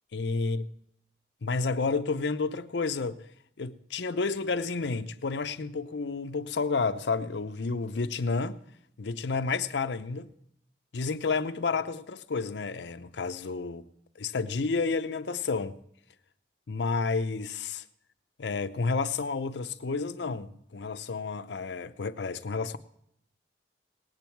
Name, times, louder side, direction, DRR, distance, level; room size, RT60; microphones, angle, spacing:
voice 1, 0.1-0.6 1.4-3.2 3.6-8.6 9.0-10.3 10.9-13.8 14.2-15.8 16.7-17.8 18.4-22.8, left 4 dB, 80° left, 0.6 m, -30 dB
18.5 x 8.9 x 4.5 m
head